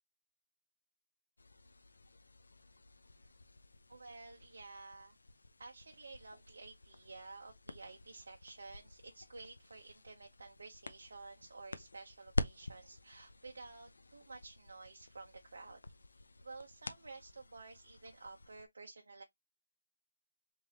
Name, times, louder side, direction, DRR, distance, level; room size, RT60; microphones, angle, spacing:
sound 1, 1.4-18.7, left 2 dB, 85° left, 0.6 m, -47 dB
voice 1, 3.9-5.1 5.6-15.8 16.1-19.2, right 3 dB, 70° right, 0.8 m, -52 dB
3.5 x 3.4 x 2.8 m
hypercardioid pair, 170°, 0 cm